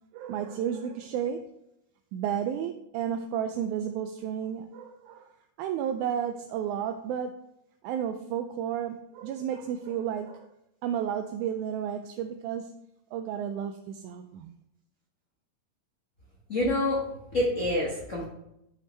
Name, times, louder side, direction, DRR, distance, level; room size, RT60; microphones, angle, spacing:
voice 1, 0.1-1.5 2.1-5.3 5.6-7.3 7.8-10.5 10.8-12.7 13.1-14.6, right 9 dB, 80° right, 6 dB, 1.8 m, -32 dB
voice 2, 16.5-17.0 17.3-18.3, left 1 dB, 65° left, -5 dB, 0.7 m, -26 dB
11.0 x 5.6 x 3.3 m, 0.82 s
omnidirectional pair, 3.9 m